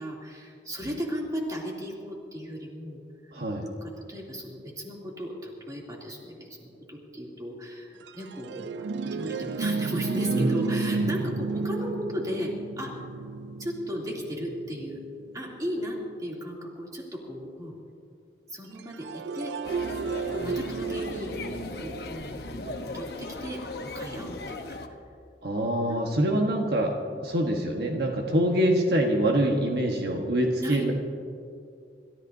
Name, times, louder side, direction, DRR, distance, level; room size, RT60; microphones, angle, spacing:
voice 1, 0.0-3.3 3.6-12.9 13.6-15.0 15.3-17.7 18.5-19.5 20.3-21.3 21.8-24.8 25.9-26.0 26.3-26.4 27.2-27.3 30.6-30.9, equal, 20° right, -3 dB, 2.8 m, -36 dB
voice 2, 3.3-3.7 10.3-11.0 25.4-27.0 27.2-30.9, right 1 dB, 65° right, 1 dB, 1.3 m, -25 dB
sound 1, 8.0-15.6 18.8-22.9, right 4 dB, 80° right, 0.4 m, -33 dB
sound 2, 19.6-24.9, left 2 dB, 65° left, 1.1 m, -37 dB
28.0 x 14.0 x 2.7 m, 2.5 s
head